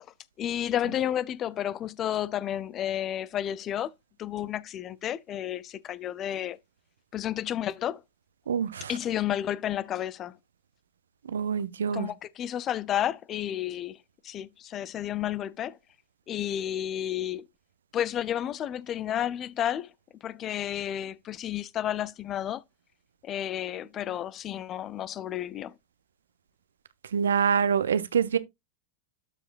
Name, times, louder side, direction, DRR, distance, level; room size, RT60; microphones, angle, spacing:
voice 1, 0.4-3.9 4.2-6.6 7.1-8.0 8.9-10.4 11.9-14.0 14.2-15.8 16.3-17.5 17.9-19.9 20.2-22.6 23.2-25.7, left 11 dB, 30° left, 0.5 m, -31 dB
voice 2, 8.5-8.9 11.3-12.1 27.1-28.4, right 7 dB, 65° right, 0.7 m, -25 dB
12.5 x 4.9 x 2.4 m
figure-of-eight pair, 90°, 0 cm